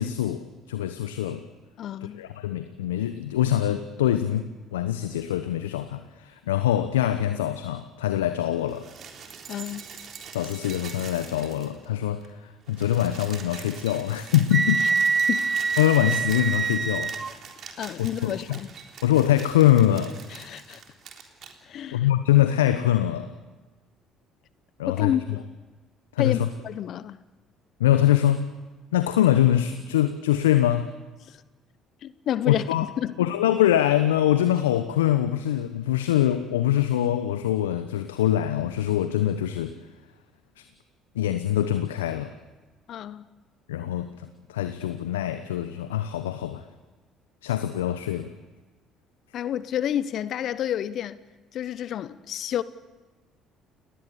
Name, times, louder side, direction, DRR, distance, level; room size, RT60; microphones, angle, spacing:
voice 1, 0.0-1.4 2.0-8.9 10.3-14.8 15.8-17.2 18.2-18.6 19.0-20.2 21.9-23.3 24.8-25.4 26.1-26.5 27.8-28.5 28.9-30.9 32.5-32.9 33.2-39.7 41.1-42.3 43.7-46.6 47.4-48.3, left 12 dB, 80° left, 1.0 m, -23 dB
voice 2, 1.8-2.2 9.5-9.8 14.8-14.9 15.3-15.5 17.8-18.7 20.3-20.8 21.6-22.1 24.9-25.2 26.2-26.4 26.6-27.2 31.3-31.4 32.0-32.7 33.0-33.1 42.9-43.2 49.3-51.2 51.5-52.6, left 10 dB, 55° left, 0.9 m, -29 dB
sound 1, 8.6-11.9 12.2-12.3 12.5-21.5 22.5-22.6, right 6 dB, 50° right, 3.6 m, -43 dB
Wind instrument woodwind instrument, 14.5-17.3, right 5 dB, 30° right, 1.2 m, -25 dB
29.5 x 19.5 x 7.0 m
hypercardioid pair, 55°, 0 cm